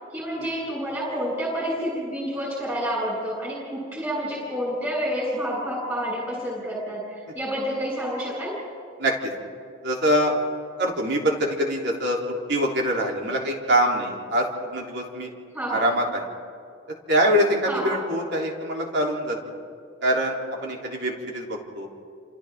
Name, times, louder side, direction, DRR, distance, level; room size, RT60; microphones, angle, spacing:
voice 1, 0.1-8.6 15.5-15.8 17.7-18.1, equal, 15° right, -5 dB, 7.2 m, -29 dB
voice 2, 9.0-9.3 9.8-10.4 10.8-12.2 12.5-15.3 15.7-16.2 17.1-19.4 20.0-21.9, equal, 60° right, -1 dB, 3.6 m, -24 dB
29.5 x 27.5 x 3.8 m, 2.3 s
head